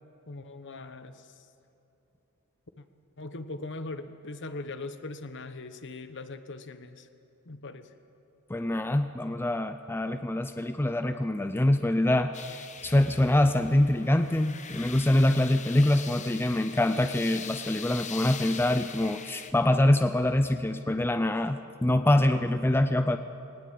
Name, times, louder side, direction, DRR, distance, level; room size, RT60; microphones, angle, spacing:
voice 1, 0.3-1.3 2.8-2.9 3.2-7.1 7.5-7.9, left 2 dB, 55° left, 10 dB, 1.1 m, -40 dB
voice 2, 8.5-23.2, left 1 dB, 10° left, 9 dB, 0.5 m, -25 dB
sound 1, 12.3-19.5, left 7 dB, 35° left, 1.0 m, -42 dB
19.5 x 19.0 x 8.5 m, 2.9 s
head